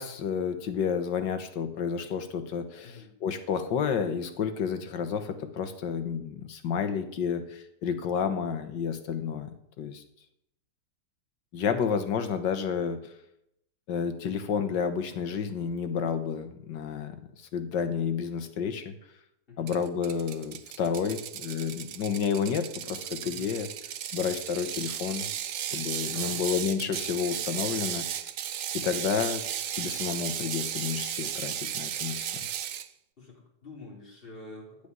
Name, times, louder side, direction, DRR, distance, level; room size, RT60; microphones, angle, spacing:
voice 1, 0.0-9.5 9.8-10.0 11.5-13.1 13.9-18.9 19.6-23.7 24.1-25.3 25.7-28.1 28.7-29.4 29.7-32.3, left 7 dB, 85° left, 8 dB, 1.9 m, -30 dB
Ratchet pawl, 19.7-32.9, right 10 dB, 60° right, 0.9 m, -35 dB
voice 2, 33.2-34.9, left 3 dB, 30° left, -2 dB, 3.8 m, -47 dB
15.0 x 5.2 x 9.7 m, 0.79 s
omnidirectional pair, 1.9 m